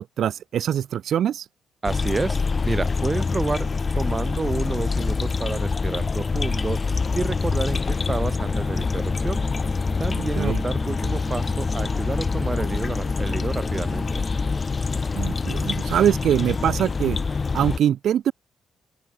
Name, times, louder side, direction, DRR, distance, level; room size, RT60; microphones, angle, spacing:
voice 1, 0.0-1.5 10.1-10.6 15.1-18.3, right 10 dB, 65° right, 0.5 m, -23 dB
sound 1, 1.8-17.8, left 4 dB, 30° left, 3.9 m, -25 dB
voice 2, 1.8-2.4 2.7-3.7 4.0-6.8 7.2-9.4 10.0-14.2, right 3 dB, 25° right, 1.8 m, -29 dB
sound 2, 8.2-14.6, right 1 dB, 10° right, 3.1 m, -39 dB
open air
cardioid pair, 90°, 0 cm